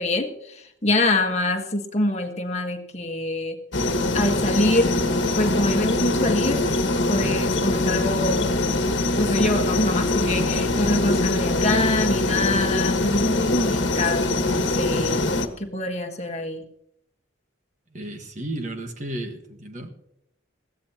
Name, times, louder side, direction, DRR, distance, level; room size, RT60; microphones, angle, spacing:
voice 1, 0.0-3.6 4.1-4.9 5.4-6.6 7.1-8.5 9.2-15.2 15.6-16.6, left 2 dB, 35° left, 4 dB, 1.5 m, -25 dB
sound 1, 3.7-15.5, left 2 dB, 65° left, 1.5 m, -23 dB
voice 2, 17.9-19.9, right 1 dB, 35° right, 5 dB, 1.5 m, -33 dB
21.0 x 15.5 x 2.9 m, 0.75 s
head